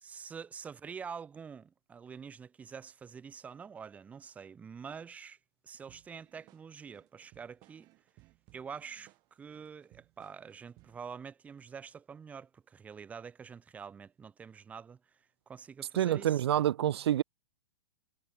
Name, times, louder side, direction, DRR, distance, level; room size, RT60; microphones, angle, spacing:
voice 1, 0.0-5.4 5.6-7.9 8.5-15.0 15.5-16.6, right 6 dB, 10° right, 1.3 m, -46 dB
sound 1, 5.9-11.1, right 21 dB, 30° right, 7.5 m, -63 dB
voice 2, 15.9-17.2, right 11 dB, 65° right, 0.9 m, -27 dB
hypercardioid pair, 165°, 14 cm